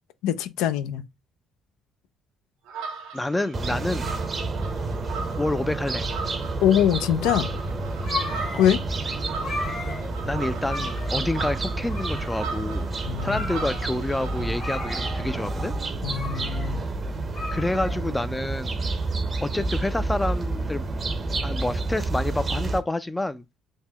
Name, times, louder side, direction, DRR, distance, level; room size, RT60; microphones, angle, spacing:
voice 1, 0.2-1.0 6.6-7.5 8.6-8.8 13.0-13.4 16.0-16.8, left 10 dB, 85° left, 0.3 m, -23 dB
sound 1, 2.7-14.6, right 5 dB, 80° right, 0.6 m, -38 dB
voice 2, 3.1-4.1 5.4-6.1 8.5-8.6 10.3-12.9 13.2-15.7 17.5-18.8 19.4-20.9 21.4-23.4, left 2 dB, 10° left, 0.4 m, -28 dB
sound 2, 3.5-22.8, right 3 dB, 35° right, 0.6 m, -29 dB
sound 3, 7.5-18.5, left 3 dB, 55° left, 1.2 m, -36 dB
3.5 x 2.1 x 3.3 m
supercardioid pair, 75°, 0 cm